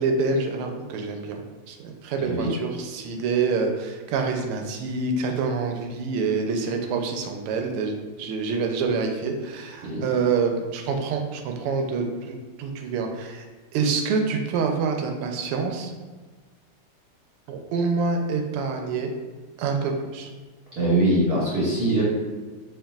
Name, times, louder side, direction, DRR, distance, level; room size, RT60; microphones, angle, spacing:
voice 1, 0.0-13.4 13.7-15.9 17.5-19.1 19.6-20.3, right 4 dB, 85° right, 4 dB, 1.5 m, -26 dB
voice 2, 2.2-2.5 9.8-10.0 20.7-22.1, right 1 dB, 55° right, -7 dB, 1.2 m, -22 dB
4.5 x 3.1 x 2.3 m, 1.4 s
omnidirectional pair, 2.4 m